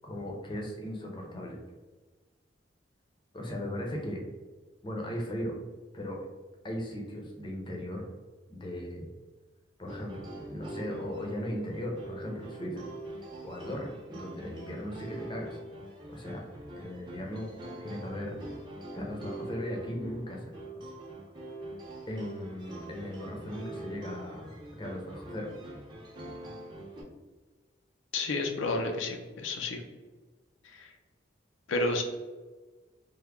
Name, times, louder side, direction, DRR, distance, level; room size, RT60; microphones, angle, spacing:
voice 1, 0.0-1.6 3.3-4.2 4.8-5.5 5.9-6.2 6.6-8.0 8.5-9.1 9.8-12.9 13.4-15.6 16.1-16.5 16.7-17.5 17.8-18.4 18.9-20.5 22.1-25.5, equal, 25° left, 0 dB, 0.6 m, -37 dB
sound 1, 9.9-27.0, right 1 dB, 25° right, 0.6 m, -44 dB
voice 2, 28.1-29.8 30.7-30.9 31.7-32.0, left 2 dB, 90° left, 4 dB, 0.5 m, -31 dB
3.4 x 2.1 x 3.4 m, 1.3 s
head